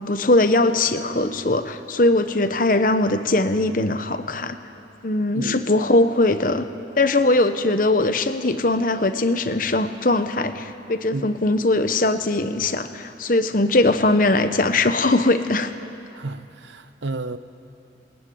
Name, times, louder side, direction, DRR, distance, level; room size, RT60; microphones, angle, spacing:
voice 1, 0.0-4.6 5.0-6.7 6.9-15.7, left 2 dB, 50° left, 10 dB, 1.0 m, -20 dB
voice 2, 16.1-17.4, right 3 dB, 85° right, 11 dB, 0.9 m, -31 dB
20.0 x 19.0 x 9.4 m, 2.7 s
head